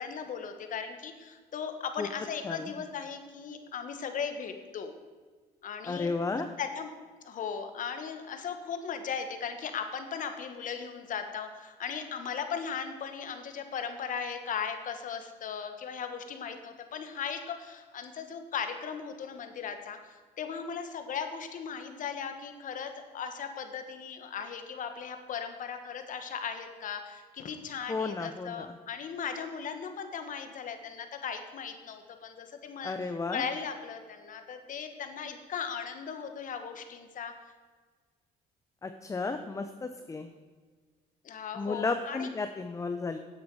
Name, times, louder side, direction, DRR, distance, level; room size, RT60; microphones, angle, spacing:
voice 1, 0.0-4.9 5.6-6.9 7.2-32.9 33.3-37.3 41.2-42.3, left 6 dB, 50° left, 7 dB, 1.3 m, -37 dB
voice 2, 5.9-6.5 27.9-28.7 32.8-33.4 38.8-40.3 41.6-43.2, left 4 dB, 20° left, 8 dB, 0.6 m, -33 dB
9.7 x 8.1 x 4.7 m, 1.5 s
cardioid pair, 110°, 17 cm